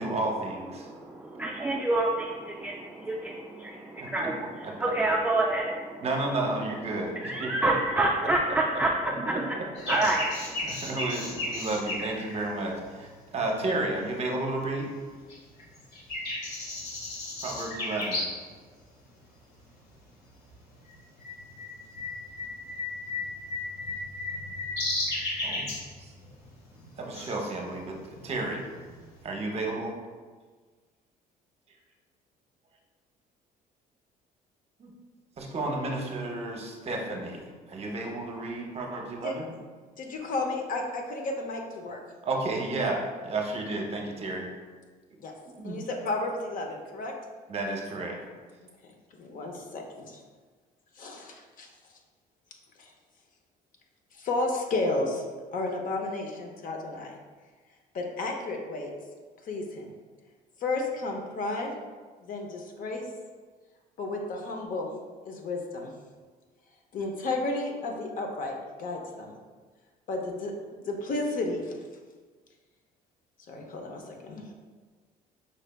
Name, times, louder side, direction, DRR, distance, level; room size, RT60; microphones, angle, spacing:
voice 1, 0.0-0.9 4.0-4.3 4.6-4.9 6.0-7.7 8.2-9.4 9.9-10.0 10.6-14.9 17.4-18.2 25.4-25.7 26.0-26.1 27.0-28.6 29.2-30.0 34.8-34.9 35.4-39.5 42.2-44.5 45.6-45.8 47.5-48.2, right 2 dB, 40° right, 1 dB, 0.7 m, -32 dB
voice 2, 0.8-6.1 7.2-9.6 9.9-10.6, right 2 dB, 10° right, -2 dB, 0.3 m, -28 dB
sound 1, 9.7-13.7 14.2-15.0 15.3-18.5 18.8-18.9 19.6-19.9 20.2-29.2, left 2 dB, 70° left, 1.3 m, -35 dB
voice 3, 40.0-42.0 45.2-45.3 45.6-47.1 49.2-50.2 51.0-51.7 52.8-52.9 54.2-55.2 55.5-57.2 57.9-58.9 59.5-59.9 60.6-61.7 62.2-63.0 64.0-64.9 65.2-65.9 66.9-69.3 70.1-70.5 70.9-71.7 73.5-74.4, left 2 dB, 55° left, 2 dB, 0.7 m, -32 dB
5.3 x 3.2 x 2.2 m, 1.5 s
cardioid pair, 110°, 17 cm